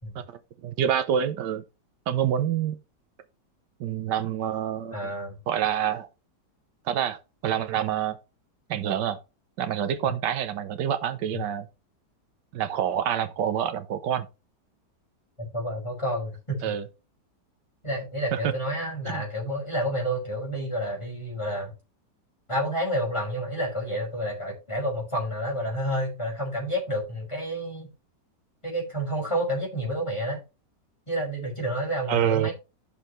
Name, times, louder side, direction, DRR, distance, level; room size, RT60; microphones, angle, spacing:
voice 1, 0.1-1.6 2.1-2.8 3.8-5.1 5.5-6.1 6.9-8.2 8.7-9.2 9.6-11.7 12.5-14.3 16.6-16.8 18.3-18.4 19.1-19.2 32.1-32.5, right 9 dB, 85° right, 1.5 m, -27 dB
voice 2, 4.9-5.4 15.4-16.6 17.8-21.7 22.5-27.9 28.6-30.4 31.1-32.5, equal, 15° left, 5.4 m, -29 dB
12.5 x 6.8 x 3.1 m
omnidirectional pair, 1.8 m